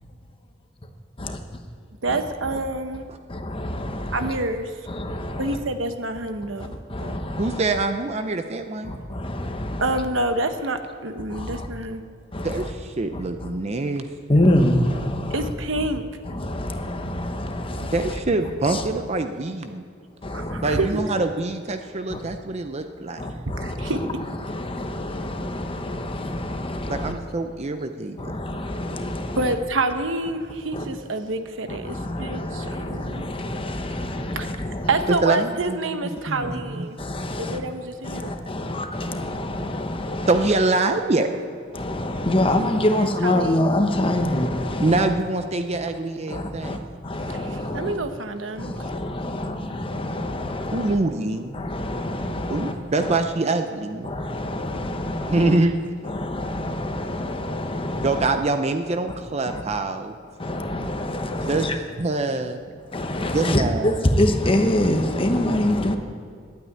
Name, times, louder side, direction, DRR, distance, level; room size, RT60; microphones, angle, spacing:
voice 1, 2.0-3.0 4.1-4.7 5.4-7.1 9.8-12.0 15.3-16.0 20.3-21.0 23.5-24.0 29.4-33.2 34.3-34.5 34.9-37.0 37.4-38.3 42.6-43.7 47.2-48.9, right 2 dB, 75° right, 8 dB, 1.0 m, -28 dB
voice 2, 3.3-4.3 4.9-5.6 6.6-7.6 8.8-10.0 11.3-11.7 12.3-12.7 13.1-13.5 14.3-15.5 15.8-15.9 16.2-18.2 18.7-18.9 20.2-20.8 22.1-22.2 23.2-24.1 24.4-27.2 28.2-29.5 30.7-30.9 31.7-35.1 36.4-36.5 37.0-37.6 38.0-40.5 41.7-45.0 46.3-48.0 48.6-51.0 51.5-53.2 54.0-55.6 56.0-58.3 59.5-59.6 60.4-61.8 62.9-66.0, left 1 dB, 30° left, 6 dB, 1.0 m, -26 dB
voice 3, 7.4-8.9 12.4-14.1 17.9-19.8 20.6-23.2 26.9-28.2 35.2-35.8 36.3-36.9 40.3-41.4 44.8-46.8 50.7-51.7 52.5-54.1 55.3-55.7 58.0-60.1 61.3-61.7 62.0-62.6 63.2-64.0, right 2 dB, 35° right, 7 dB, 0.6 m, -24 dB
12.0 x 9.1 x 9.3 m, 2.2 s
head